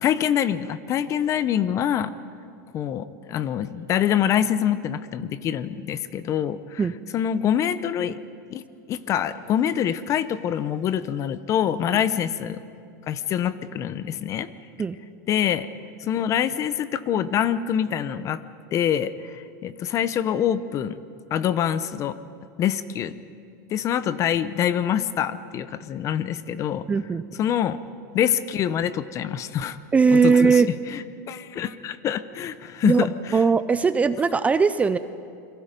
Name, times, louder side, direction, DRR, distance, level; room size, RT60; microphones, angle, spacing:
voice 1, 0.0-2.1 2.7-6.8 7.1-8.2 8.5-8.6 8.9-12.6 13.1-14.5 15.3-15.7 16.0-18.4 18.7-21.0 21.3-22.2 22.6-23.1 23.7-26.8 27.4-27.8 28.1-29.8 30.1-30.6 30.9-33.1, left 9 dB, 30° left, 15 dB, 0.8 m, -25 dB
voice 2, 26.9-27.2 29.9-30.7 32.8-33.1 33.3-35.0, right 5 dB, 15° right, 13 dB, 0.5 m, -19 dB
28.5 x 22.5 x 5.3 m, 2.4 s
supercardioid pair, 145°, 10 cm